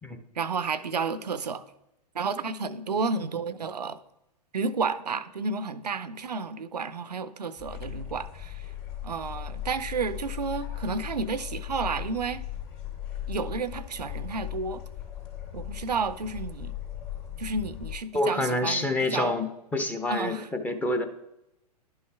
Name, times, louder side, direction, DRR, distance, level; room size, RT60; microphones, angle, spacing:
voice 1, 0.4-1.6 2.1-4.0 4.5-8.7 9.0-12.4 13.3-14.8 15.5-16.7 17.4-19.3 20.1-20.5, right 4 dB, 80° right, 14 dB, 0.5 m, -31 dB
sound 1, 7.6-18.0, left 11 dB, 40° left, 2.6 m, -38 dB
voice 2, 18.1-21.1, left 2 dB, 5° left, 7 dB, 0.6 m, -27 dB
11.0 x 5.5 x 3.4 m, 0.87 s
figure-of-eight pair, 110°, 21 cm